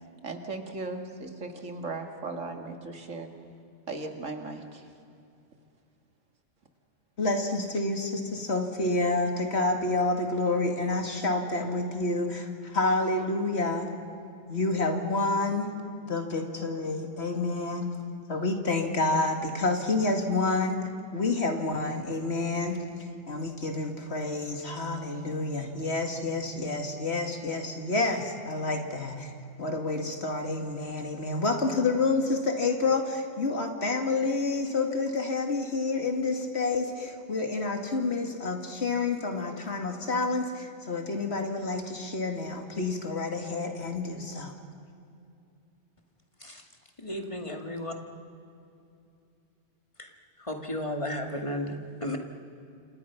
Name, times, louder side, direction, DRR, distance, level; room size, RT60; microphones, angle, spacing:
voice 1, 0.2-3.3 3.9-4.9, right 3 dB, 90° right, 4 dB, 2.5 m, -37 dB
voice 2, 7.2-13.9 14.5-15.7 16.0-17.9 18.3-22.8 23.3-29.3 29.6-44.5, left 3 dB, 60° left, 4 dB, 2.6 m, -29 dB
voice 3, 47.0-47.9 50.0-50.1 50.4-52.2, left 1 dB, 25° left, 3 dB, 2.2 m, -34 dB
30.0 x 27.0 x 5.9 m, 2.6 s
omnidirectional pair, 1.3 m